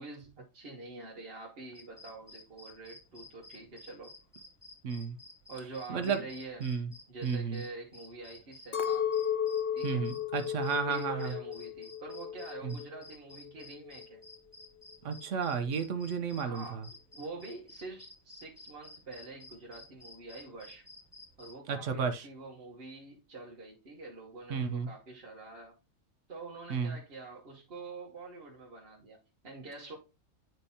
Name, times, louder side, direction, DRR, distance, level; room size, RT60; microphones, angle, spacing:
voice 1, 0.0-4.1 5.5-6.7 7.1-9.1 9.7-10.1 10.6-14.2 16.4-16.9 17.1-20.8 21.4-25.8 26.3-29.2 29.4-30.0, right 3 dB, 50° right, 1.3 m, -46 dB
sound 1, 1.7-21.5, left 2 dB, 35° left, 4.6 m, -53 dB
voice 2, 4.8-5.2 5.9-6.2 6.6-6.9 7.2-7.6 9.8-11.3 12.6-12.8 15.0-16.8 21.7-22.3 24.5-24.9 26.7-27.0, right 6 dB, 70° right, 1.1 m, -32 dB
Chink clink, 8.7-13.1 13.3-14.2, left 8 dB, 50° left, 0.7 m, -34 dB
9.8 x 4.5 x 2.7 m
omnidirectional pair, 1.4 m